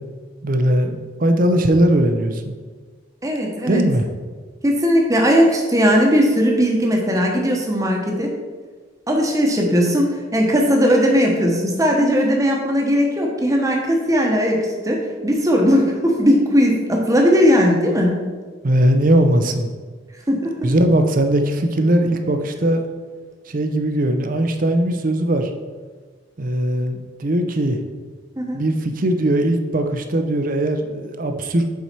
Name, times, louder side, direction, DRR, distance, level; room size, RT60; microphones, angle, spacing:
voice 1, 0.4-2.6 3.7-4.1 18.6-19.7 20.6-22.8 23.5-25.5 26.4-27.8 28.5-31.7, right 1 dB, 45° right, 6 dB, 0.6 m, -19 dB
voice 2, 3.2-3.8 4.6-8.3 9.1-18.2 20.3-20.7 28.4-28.6, equal, 15° right, 0 dB, 1.0 m, -18 dB
7.0 x 4.7 x 4.5 m, 1.4 s
head